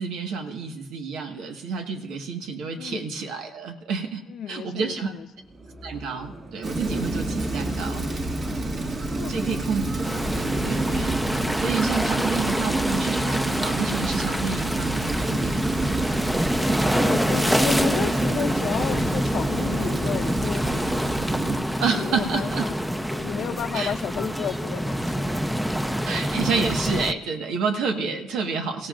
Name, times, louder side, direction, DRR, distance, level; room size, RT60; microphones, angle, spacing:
voice 1, 0.0-5.1 5.8-8.1 9.3-15.9 21.8-22.7 23.7-23.9 26.0-28.9, right 5 dB, 85° right, 4 dB, 1.5 m, -29 dB
voice 2, 2.8-3.1 4.3-5.3 7.9-8.6 9.1-9.6 17.0-21.2 21.9-22.8 23.1-25.3 27.9-28.2, left 9 dB, 70° left, 10 dB, 0.7 m, -33 dB
sound 1, 5.3-14.6, right 1 dB, 30° right, 7.9 m, -40 dB
Rain, 6.6-21.6, right 2 dB, 45° right, 1.9 m, -28 dB
sound 2, 10.0-27.1, equal, 5° right, 0.6 m, -26 dB
28.0 x 16.5 x 2.5 m, 0.94 s
cardioid pair, 90°, 0 cm